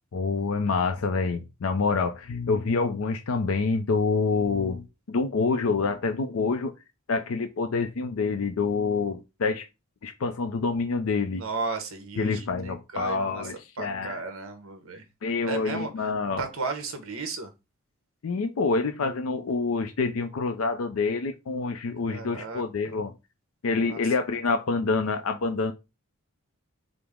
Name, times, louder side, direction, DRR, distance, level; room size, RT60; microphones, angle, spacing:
voice 1, 0.1-6.7 7.1-9.7 10.0-11.4 12.2-14.2 15.2-16.4 18.2-23.1 23.6-25.7, left 4 dB, 75° left, 0.4 m, -27 dB
voice 2, 11.4-15.0 15.4-15.9 16.4-17.5 22.0-22.9 23.8-24.1, right 4 dB, 70° right, 0.9 m, -35 dB
4.9 x 2.0 x 3.5 m
head